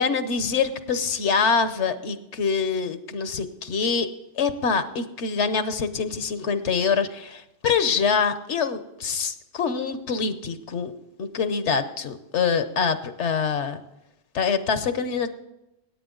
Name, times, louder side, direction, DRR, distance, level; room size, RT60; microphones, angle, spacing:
voice 1, 0.0-4.1 4.4-10.9 11.2-13.8 14.3-15.3, left 5 dB, 75° left, 11 dB, 1.2 m, -25 dB
17.5 x 8.7 x 3.8 m, 0.93 s
omnidirectional pair, 1.2 m